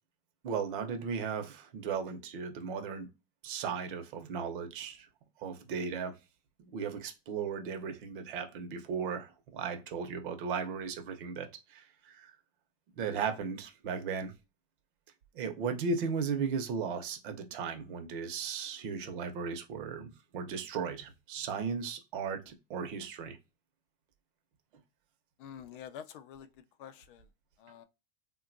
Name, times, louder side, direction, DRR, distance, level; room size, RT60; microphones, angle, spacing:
voice 1, 0.4-3.1 3.4-5.1 5.4-6.1 6.6-12.3 13.0-14.3 15.3-23.4, right 6 dB, 55° right, 0.8 m, -36 dB
voice 2, 25.4-26.5 26.8-27.3 27.6-27.8, left 9 dB, 60° left, 0.5 m, -47 dB
3.6 x 2.2 x 2.5 m
supercardioid pair, 180°, 31 cm